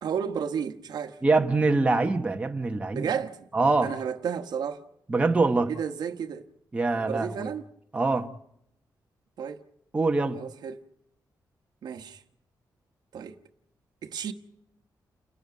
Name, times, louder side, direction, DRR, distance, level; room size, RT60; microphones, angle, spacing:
voice 1, 0.0-1.2 2.9-3.5 3.8-4.8 5.7-6.5 6.9-7.7 9.4-9.6 10.3-10.8 11.8-12.2 13.1-13.4 14.0-14.3, right 7 dB, 65° right, 1.2 m, -32 dB
voice 2, 1.2-3.1 3.5-3.9 5.1-5.7 6.7-7.5 7.9-8.3 9.9-10.4, right 3 dB, 15° right, 1.1 m, -24 dB
30.0 x 11.0 x 9.4 m
wide cardioid pair, 160°, 7 cm